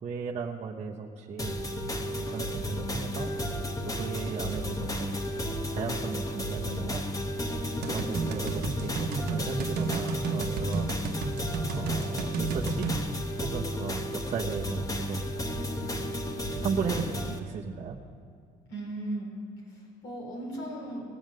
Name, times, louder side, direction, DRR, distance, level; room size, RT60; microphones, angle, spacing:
voice 1, 0.0-3.3 3.9-5.2 5.7-7.0 7.9-10.9 11.7-12.9 13.4-15.2 16.6-18.0, right 5 dB, 40° right, -2 dB, 0.9 m, -35 dB
sound 1, 1.4-17.4, equal, 20° left, 1.1 m, -33 dB
sound 2, 7.8-13.0, right 4 dB, 70° right, 1.0 m, -33 dB
voice 2, 18.7-19.3 19.7-21.0, right 1 dB, 85° left, -3 dB, 4.0 m, -37 dB
18.5 x 7.2 x 6.4 m, 2.2 s
cardioid pair, 110°, 17 cm